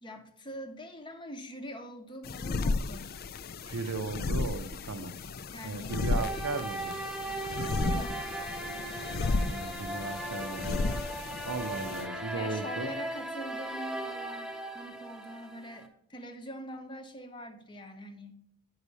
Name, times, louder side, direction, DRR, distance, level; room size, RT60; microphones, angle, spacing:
voice 1, 0.0-3.2 5.5-6.0 7.9-8.3 12.3-18.4, equal, 20° left, 6 dB, 0.7 m, -43 dB
sound 1, 2.2-12.1, left 3 dB, 45° left, 0.3 m, -34 dB
voice 2, 3.6-5.2 5.6-7.0 9.4-10.9 11.5-12.9, right 3 dB, 80° right, 9 dB, 0.7 m, -36 dB
sound 2, 5.9-15.9, right 1 dB, 5° right, 1.0 m, -38 dB
9.5 x 4.8 x 5.4 m, 0.71 s
head